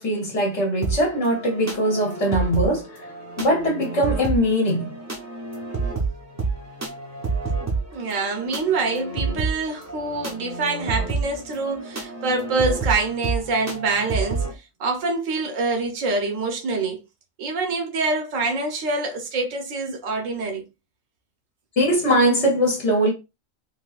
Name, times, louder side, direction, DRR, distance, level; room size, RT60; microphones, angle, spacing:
voice 1, 0.0-3.1 3.4-4.9 21.8-23.1, equal, 60° left, 1.2 m, -21 dB
sound 1, 0.8-14.5, right 4 dB, 20° right, 0.5 m, -29 dB
voice 2, 7.9-17.0 17.4-20.7, right 3 dB, 80° right, 1.3 m, -25 dB
3.7 x 2.7 x 2.4 m
omnidirectional pair, 1.3 m